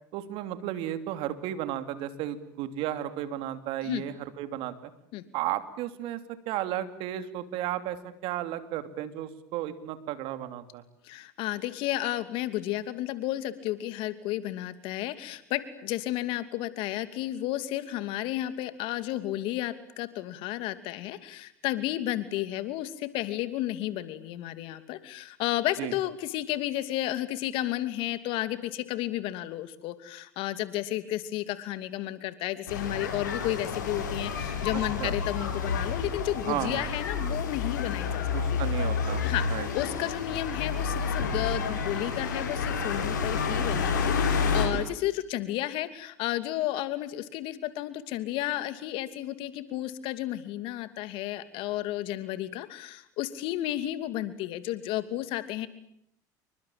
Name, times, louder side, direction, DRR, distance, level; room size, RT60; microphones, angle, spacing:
voice 1, 0.1-4.9 5.3-6.2 6.5-10.8 25.8-25.9 34.7-35.1 36.5-36.9 38.3-39.2 39.5-39.7, right 12 dB, 65° right, 11 dB, 3.0 m, -34 dB
voice 2, 11.0-38.6 39.2-39.4 39.7-55.7, left 14 dB, 65° left, 12 dB, 2.8 m, -32 dB
sound 1, 32.7-44.7, left 5 dB, 90° left, 6.9 m, -29 dB
28.0 x 24.0 x 8.8 m, 0.71 s
hypercardioid pair, 85°, 10 cm